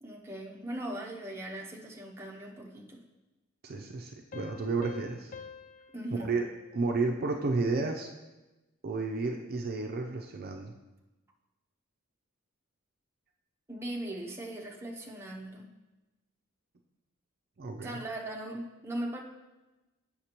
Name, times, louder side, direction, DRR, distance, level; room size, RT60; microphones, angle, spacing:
voice 1, 0.0-3.0 5.9-6.4 13.7-15.7 17.8-19.2, right 1 dB, 10° right, -1 dB, 0.7 m, -39 dB
voice 2, 3.6-5.3 6.2-6.4 6.7-8.1 8.8-10.7 17.6-18.0, right 3 dB, 45° right, 3 dB, 0.4 m, -32 dB
Piano, 4.3-7.6, left 6 dB, 40° left, 0.3 m, -49 dB
8.1 x 5.7 x 2.9 m, 1.1 s
head